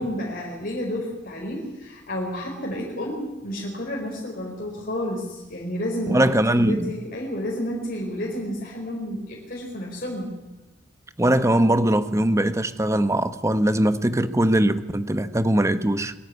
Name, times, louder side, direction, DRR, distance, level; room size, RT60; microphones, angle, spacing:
voice 1, 0.0-10.3, equal, 50° left, -2 dB, 4.6 m, -30 dB
voice 2, 6.1-6.9 11.2-16.1, right 1 dB, 15° right, 11 dB, 1.1 m, -21 dB
23.0 x 14.5 x 9.6 m, 1.1 s
head